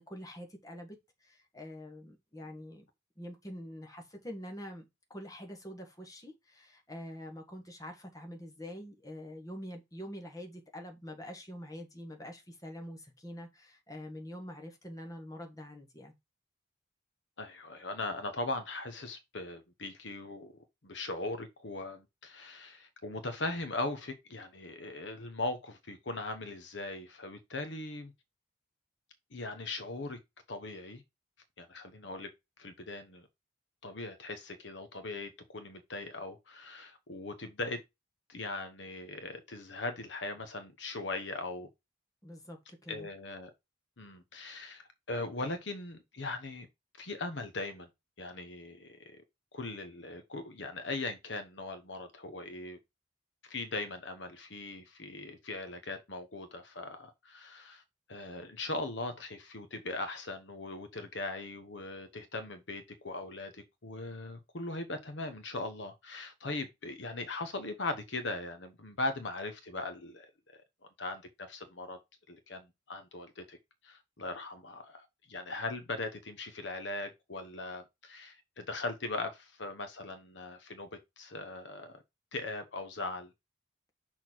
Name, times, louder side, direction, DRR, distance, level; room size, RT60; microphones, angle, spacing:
voice 1, 0.0-2.8 3.2-16.1 42.2-43.1, equal, 20° left, 1.5 m, -45 dB
voice 2, 17.4-28.1 29.3-30.2 30.5-31.0 31.6-32.3 32.6-33.3 33.8-37.8 38.3-41.7 42.9-43.5 44.0-46.7 47.0-47.9 48.2-49.2 49.5-52.8 53.5-57.8 58.1-70.6 71.0-72.0 72.3-73.6 73.8-82.0 82.3-83.3, left 2 dB, 65° left, 1.0 m, -39 dB
6.2 x 4.1 x 4.4 m
head